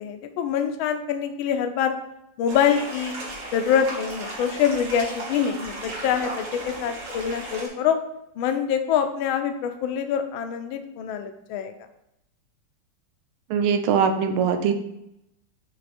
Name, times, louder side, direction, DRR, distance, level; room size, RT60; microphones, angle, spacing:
voice 1, 0.0-1.9 2.4-3.1 3.5-8.0 8.4-11.7, left 8 dB, 75° left, 7 dB, 1.4 m, -25 dB
sound 1, 2.5-7.7, right 2 dB, 65° right, 2.2 m, -35 dB
voice 2, 13.5-14.7, right 6 dB, 90° right, 8 dB, 1.5 m, -21 dB
7.9 x 3.3 x 4.2 m, 0.83 s
omnidirectional pair, 2.3 m